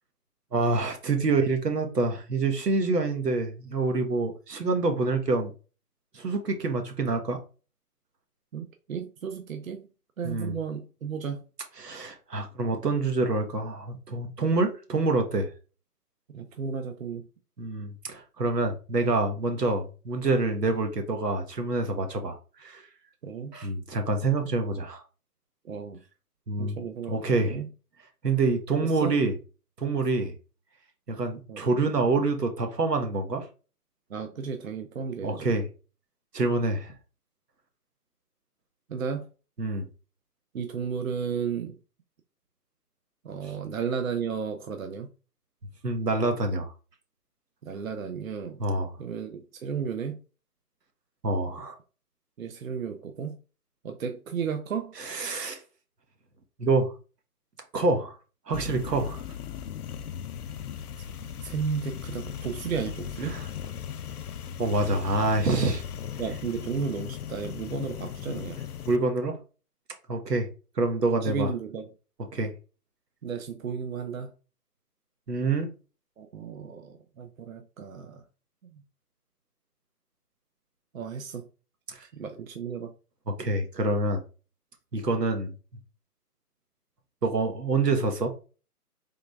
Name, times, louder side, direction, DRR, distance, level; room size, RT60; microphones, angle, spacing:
voice 1, 0.5-5.5 6.1-7.4 10.2-10.5 11.8-15.5 17.6-22.9 23.5-25.0 26.5-26.8 27.1-27.6 28.2-29.3 29.8-30.3 31.1-33.5 35.2-35.7 36.3-36.9 39.6-39.9 45.8-46.7 48.6-48.9 51.2-51.8 55.0-55.6 56.6-56.9 57.7-58.2 58.5-59.2 63.2-63.5 64.6-65.8 68.9-69.4 70.1-70.5 70.7-71.5 72.3-72.5 75.3-75.7 81.9-82.1 83.3-84.2 84.9-85.5 87.2-88.3, right 3 dB, 85° right, 1.5 m, -26 dB
voice 2, 8.5-9.9 10.2-11.4 16.3-17.3 23.2-23.5 25.6-26.0 26.6-27.7 28.8-29.1 31.5-31.6 34.1-35.5 38.9-39.3 40.5-41.8 43.2-45.1 47.6-48.6 49.0-50.2 52.4-53.4 53.8-54.9 61.4-63.4 66.2-68.6 71.2-71.9 73.2-74.3 76.2-78.2 78.7-78.8 80.9-81.4 82.1-82.9, right 6 dB, 60° right, 0.7 m, -33 dB
sound 1, 58.5-69.0, left 8 dB, 70° left, 0.6 m, -37 dB
3.8 x 3.3 x 3.4 m
hypercardioid pair, 165°, 47 cm